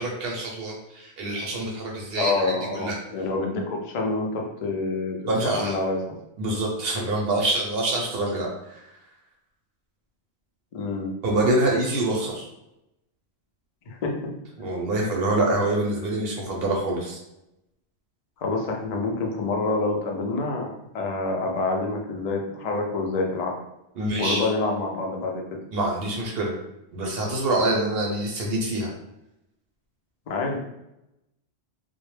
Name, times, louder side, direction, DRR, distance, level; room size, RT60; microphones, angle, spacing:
voice 1, 0.0-3.0 5.3-5.8 6.4-9.0 11.2-12.5 14.6-17.2 24.0-24.5 25.7-26.5 26.9-28.9, right 2 dB, 65° right, -1 dB, 0.7 m, -26 dB
voice 2, 2.2-5.2 5.4-6.0 10.7-11.1 13.9-14.2 18.4-20.7 20.9-23.6 24.2-25.4 30.3-30.6, left 3 dB, 55° left, 1 dB, 0.4 m, -27 dB
2.1 x 2.0 x 3.1 m, 0.87 s
omnidirectional pair, 1.2 m